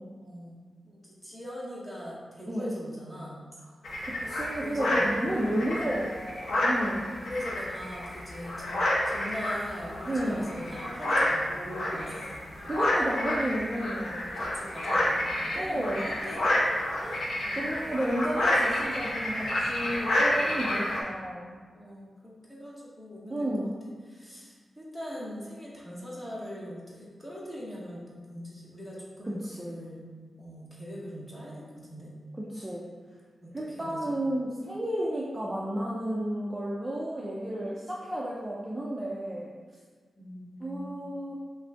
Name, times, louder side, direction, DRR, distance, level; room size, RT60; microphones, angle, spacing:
voice 1, 0.2-3.4 4.6-5.5 7.3-12.4 14.0-16.4 17.4-17.7 20.3-20.8 21.7-23.7 24.1-30.0 30.4-32.1 33.4-34.0 40.2-41.1, equal, 5° left, -5 dB, 0.9 m, -41 dB
sound 1, 3.8-21.0, left 1 dB, 60° left, 0.8 m, -29 dB
voice 2, 4.0-7.1 10.1-10.5 11.9-12.1 12.6-14.3 15.5-16.1 17.0-17.2 17.5-21.5 23.3-23.7 29.2-29.8 32.5-32.8 33.5-39.5 40.6-41.3, right 1 dB, 15° right, -5 dB, 0.4 m, -32 dB
5.2 x 2.6 x 3.3 m, 1.5 s
wide cardioid pair, 170°, 0 cm